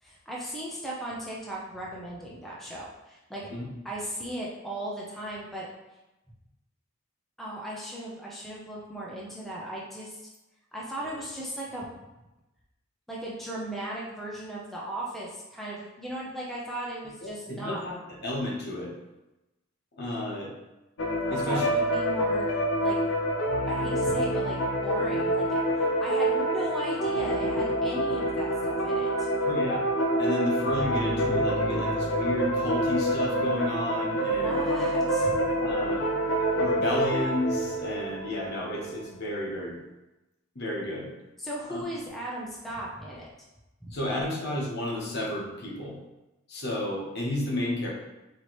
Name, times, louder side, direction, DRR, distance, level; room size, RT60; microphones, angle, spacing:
voice 1, 0.0-3.5 3.8-5.7 7.4-10.2 10.7-11.9 13.1-17.8 21.3-22.5 22.8-23.0 23.7-29.3 34.2-35.3 41.4-43.3 43.8-44.0, right 1 dB, ahead, -5 dB, 0.5 m, -37 dB
voice 2, 17.2-17.9 18.2-18.9 20.0-20.5 21.3-21.7 29.4-29.8 30.2-34.6 35.6-36.0 36.5-39.8 40.5-41.1 41.7-41.8 43.9-46.0 46.5-47.9, left 1 dB, 55° left, -3 dB, 1.0 m, -32 dB
sound 1, 21.0-39.1, right 1 dB, 80° left, 0.6 m, -27 dB
4.6 x 2.8 x 3.0 m, 1.0 s
head